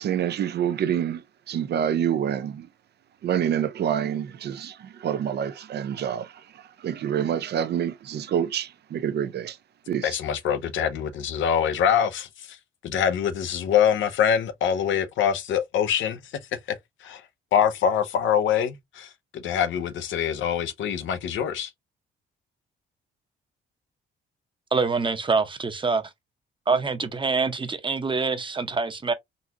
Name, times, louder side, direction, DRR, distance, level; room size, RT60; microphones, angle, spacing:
voice 1, 0.0-2.7 3.2-9.6 9.9-10.2, right 9 dB, 55° right, 0.5 m, -27 dB
voice 2, 10.0-12.6 12.8-16.2 17.0-17.2 17.5-21.7, left 8 dB, 75° left, 0.7 m, -24 dB
voice 3, 24.7-26.0 26.7-29.1, right 4 dB, 25° right, 0.8 m, -25 dB
3.9 x 2.4 x 2.8 m
cardioid pair, 90°, 20 cm